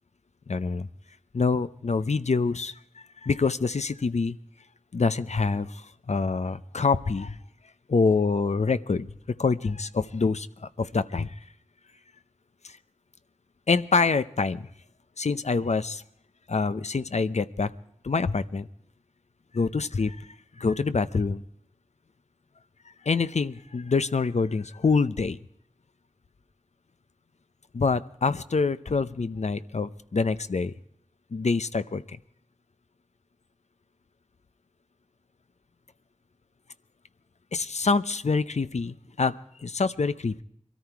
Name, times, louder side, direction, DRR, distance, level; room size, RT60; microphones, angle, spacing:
voice 1, 0.5-0.9 1.3-2.8 3.2-4.4 4.9-7.4 7.9-9.1 9.4-11.3 13.7-14.7 15.2-16.0 16.5-17.7 18.0-18.7 19.5-20.2 20.6-21.4 23.0-25.4 27.7-30.7 31.3-32.2 37.5-40.4, left 4 dB, 65° left, 13 dB, 0.7 m, -26 dB
22.5 x 13.5 x 4.7 m, 0.71 s
wide cardioid pair, 45°, 13 cm